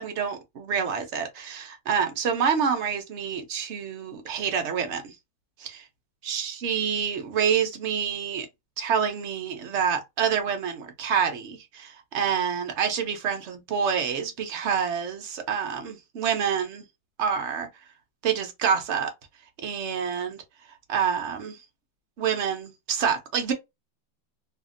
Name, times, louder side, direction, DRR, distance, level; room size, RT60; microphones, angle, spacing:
voice 1, 0.0-5.1 5.6-5.8 6.2-8.5 8.8-16.8 17.2-17.7 18.2-19.1 19.6-20.4 20.9-21.6 22.2-23.5, right 7 dB, 60° right, 0.7 m, -27 dB
2.8 x 2.5 x 2.4 m
omnidirectional pair, 1.9 m